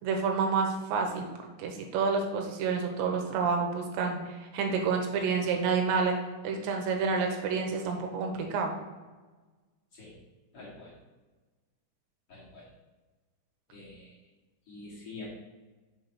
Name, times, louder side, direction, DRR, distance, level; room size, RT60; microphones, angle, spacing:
voice 1, 0.0-1.3 1.6-6.2 6.4-8.7, right 5 dB, 85° right, 3 dB, 3.2 m, -29 dB
voice 2, 10.5-10.9 12.3-12.7 13.7-14.1 14.7-15.3, left 3 dB, 45° left, -7 dB, 2.2 m, -46 dB
6.8 x 3.9 x 5.9 m, 1.3 s
omnidirectional pair, 5.0 m